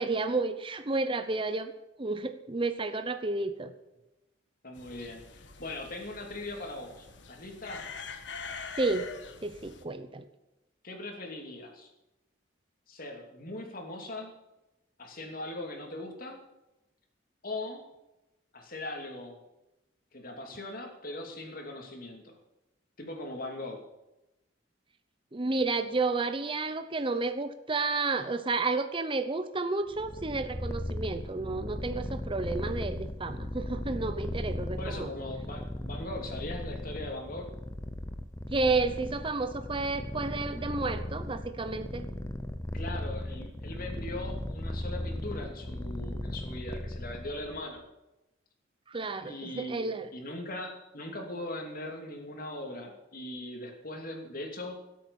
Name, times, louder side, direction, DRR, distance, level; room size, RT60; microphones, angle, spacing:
voice 1, 0.0-1.7 2.0-3.7 8.8-9.1 9.4-10.2 25.3-35.1 38.5-42.1 48.9-50.1, right 3 dB, 25° right, 9 dB, 0.8 m, -31 dB
voice 2, 4.6-7.8 10.8-11.9 12.9-14.3 15.0-16.4 17.4-17.8 18.5-19.4 20.1-22.4 23.0-23.8 34.8-37.5 42.7-47.8 49.2-54.8, left 1 dB, 50° left, 2 dB, 2.9 m, -40 dB
sound 1, 4.7-9.8, left 5 dB, 70° left, 1.4 m, -44 dB
Purr, 29.9-47.6, left 1 dB, 15° left, 0.7 m, -37 dB
17.0 x 8.5 x 7.1 m, 0.97 s
head